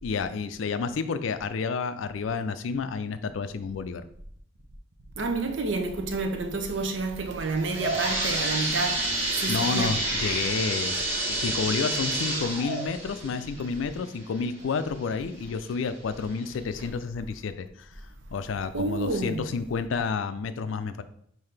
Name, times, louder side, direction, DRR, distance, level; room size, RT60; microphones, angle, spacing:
voice 1, 0.0-4.0 9.5-11.0 11.3-17.9 18.3-21.0, left 5 dB, 80° left, 0.4 m, -30 dB
voice 2, 5.2-9.1 9.4-9.9 18.7-19.4, right 3 dB, 70° right, 0.7 m, -29 dB
sound 1, 7.4-15.0 15.5-15.6 16.3-16.4 16.8-16.9, right 1 dB, 35° right, 1.5 m, -29 dB
5.6 x 2.7 x 3.3 m
head